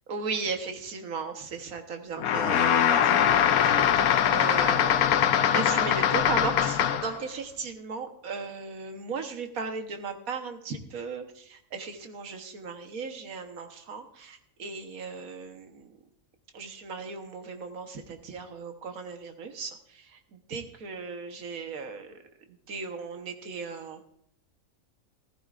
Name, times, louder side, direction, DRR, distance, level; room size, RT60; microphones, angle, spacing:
voice 1, 0.1-16.0 16.5-22.1 22.7-24.1, right 4 dB, 75° right, 6 dB, 1.6 m, -37 dB
sound 1, 2.2-7.2, left 9 dB, 85° left, 1.2 m, -22 dB
14.5 x 13.5 x 2.5 m, 0.70 s
omnidirectional pair, 1.5 m